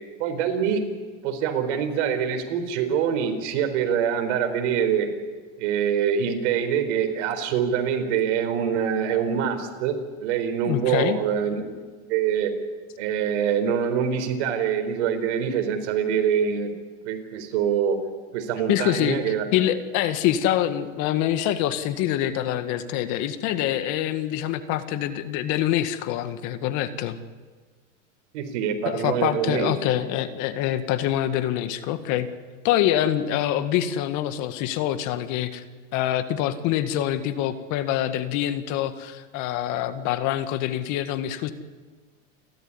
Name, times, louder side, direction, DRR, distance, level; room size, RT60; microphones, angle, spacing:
voice 1, 0.2-0.8 1.2-5.1 5.6-11.6 12.1-12.5 13.0-16.7 17.0-18.0 18.3-19.5 28.3-30.0, right 8 dB, 65° right, 6 dB, 4.4 m, -25 dB
voice 2, 10.7-11.2 18.7-19.2 19.5-27.2 28.9-32.3 32.6-35.6 35.9-41.5, left 12 dB, 50° left, 10 dB, 1.9 m, -25 dB
29.0 x 13.0 x 9.8 m, 1.4 s
supercardioid pair, 130°, 37 cm